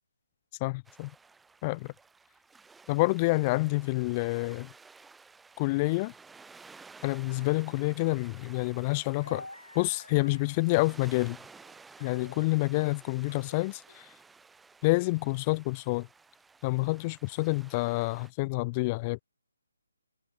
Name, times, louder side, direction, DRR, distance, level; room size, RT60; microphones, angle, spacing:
voice 1, 0.6-1.1 1.6-1.9 2.9-4.7 5.6-6.1 7.0-9.5 9.7-11.4 12.0-14.1 14.8-16.1 16.6-19.2, left 24 dB, 25° left, 0.5 m, -28 dB
sound 1, 0.8-18.3, right 4 dB, 5° right, 3.2 m, -54 dB
sound 2, 7.3-11.3 11.5-13.0 13.3-13.6 13.9-14.0, left 1 dB, 90° left, 4.5 m, -51 dB
figure-of-eight pair, 145°, 0 cm